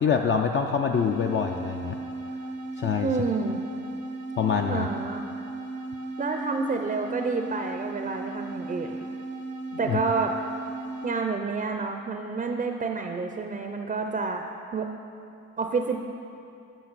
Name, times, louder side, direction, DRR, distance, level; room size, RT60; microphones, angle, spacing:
voice 1, 0.0-2.0 2.8-3.1 4.4-4.9 9.9-10.0, left 6 dB, 40° left, 3 dB, 0.4 m, -25 dB
sound 1, 0.9-11.3, right 2 dB, 85° right, 0.8 m, -36 dB
voice 2, 3.0-3.6 4.7-5.2 6.2-9.0 9.8-10.4 11.0-14.9 15.6-16.0, right 4 dB, 25° right, 4 dB, 0.5 m, -29 dB
10.5 x 5.9 x 4.0 m, 2.6 s
cardioid pair, 90°, 30 cm